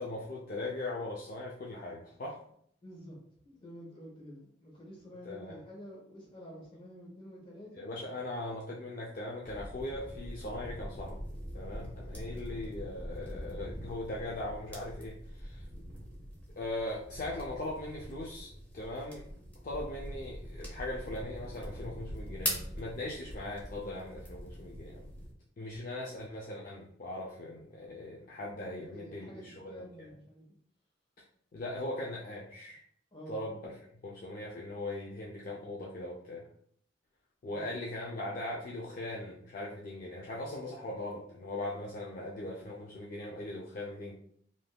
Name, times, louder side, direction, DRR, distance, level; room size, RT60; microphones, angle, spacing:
voice 1, 0.0-2.4 5.2-5.6 7.8-11.3 11.5-15.6 16.5-19.3 19.6-25.1 25.6-30.1 31.5-32.8 33.3-33.7 34.0-36.5 37.4-44.1, left 1 dB, 50° left, -3 dB, 0.4 m, -40 dB
voice 2, 2.8-7.9 28.7-30.4 33.1-33.4 37.4-37.6, equal, 30° left, -3 dB, 1.0 m, -49 dB
sound 1, 9.4-25.3, equal, 10° left, 0.7 m, -43 dB
3.3 x 2.6 x 2.3 m, 0.66 s
head